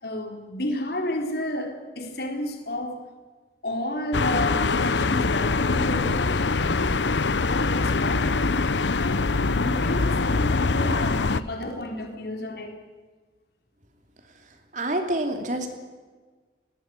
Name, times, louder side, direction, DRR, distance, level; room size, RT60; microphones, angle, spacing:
voice 1, 0.0-3.0 3.6-7.0 7.4-12.8, left 1 dB, 60° left, 4 dB, 3.9 m, -31 dB
sound 1, 4.1-11.4, left 3 dB, 90° left, 0.9 m, -23 dB
voice 2, 14.7-15.8, right 1 dB, 45° right, 5 dB, 3.1 m, -27 dB
20.0 x 19.0 x 9.8 m, 1.4 s
head